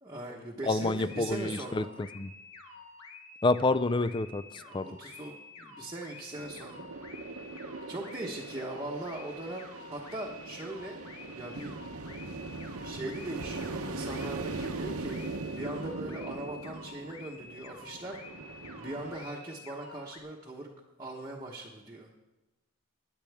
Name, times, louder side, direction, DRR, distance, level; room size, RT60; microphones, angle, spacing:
voice 1, 0.0-1.9 4.5-6.9 7.3-7.4 7.9-11.0 11.3-11.8 12.8-15.2 15.5-18.2 18.8-20.7 21.0-22.1, right 1 dB, 15° right, -3 dB, 1.1 m, -40 dB
voice 2, 0.6-1.8 2.2-2.3 3.4-4.4 4.7-4.9, left 2 dB, 20° left, 14 dB, 0.4 m, -28 dB
sound 1, 1.1-20.2, left 3 dB, 90° left, 1.5 m, -50 dB
sound 2, 6.4-19.2, right 3 dB, 90° right, 0.9 m, -40 dB
17.0 x 10.0 x 3.5 m, 1.1 s
head